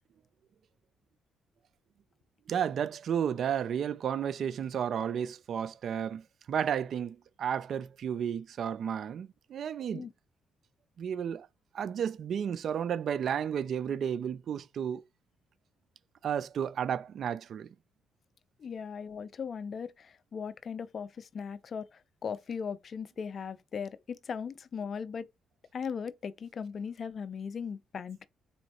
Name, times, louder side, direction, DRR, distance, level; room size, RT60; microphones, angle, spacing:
voice 1, 2.5-10.1 11.0-11.5 11.7-15.0 16.2-17.7, right 8 dB, 60° right, 0.3 m, -32 dB
voice 2, 18.6-25.3 25.7-28.2, left 6 dB, 50° left, 0.4 m, -38 dB
4.1 x 3.1 x 2.9 m
cardioid pair, 90°, 0 cm